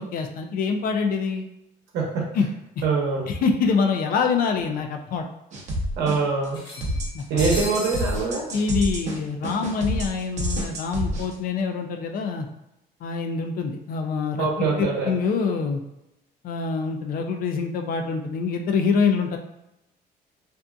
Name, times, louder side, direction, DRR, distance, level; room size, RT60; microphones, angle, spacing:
voice 1, 0.0-1.5 2.3-2.5 2.8-2.9 3.3-5.2 7.1-7.4 8.5-12.5 13.0-15.8 16.4-19.4, left 5 dB, 60° left, 4 dB, 0.4 m, -25 dB
voice 2, 2.8-3.3 6.0-6.6 7.3-8.4 14.4-15.1, right 4 dB, 80° right, -2 dB, 0.8 m, -23 dB
sound 1, 3.2-3.3 3.5-3.6 4.7-4.8 5.1-5.2 6.5-8.2, left 1 dB, 30° left, 1.1 m, -36 dB
sound 2, 5.5-6.5 6.8-11.3, equal, 45° right, 0.7 m, -28 dB
2.6 x 2.5 x 2.3 m, 0.89 s
cardioid pair, 110°, 17 cm